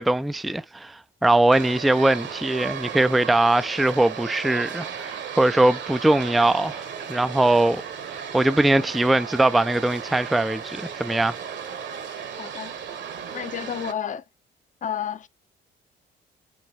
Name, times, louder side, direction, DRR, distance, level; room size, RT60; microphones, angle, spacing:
voice 1, 0.0-7.8 8.3-11.4, right 2 dB, ahead, 0.3 m, -21 dB
sound 1, 1.5-13.9, right 7 dB, 65° right, 1.3 m, -35 dB
voice 2, 12.4-12.7 13.3-14.3 14.8-15.3, left 9 dB, 40° left, 0.6 m, -30 dB
6.1 x 2.2 x 3.6 m
cardioid pair, 90°, 20 cm